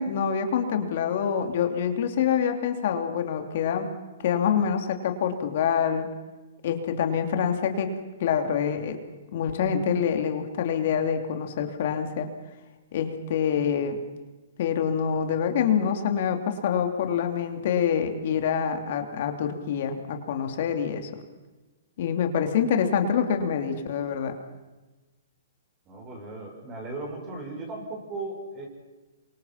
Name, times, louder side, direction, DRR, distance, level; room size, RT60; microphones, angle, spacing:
voice 1, 0.0-3.9 4.2-6.1 6.6-7.9 8.2-9.0 9.3-12.3 12.9-14.0 14.6-21.1 22.0-24.3, left 7 dB, 50° left, 5 dB, 3.0 m, -26 dB
voice 2, 25.9-28.7, right 2 dB, 25° right, 1 dB, 6.9 m, -37 dB
28.0 x 24.5 x 5.9 m, 1.2 s
hypercardioid pair, 155°, 0 cm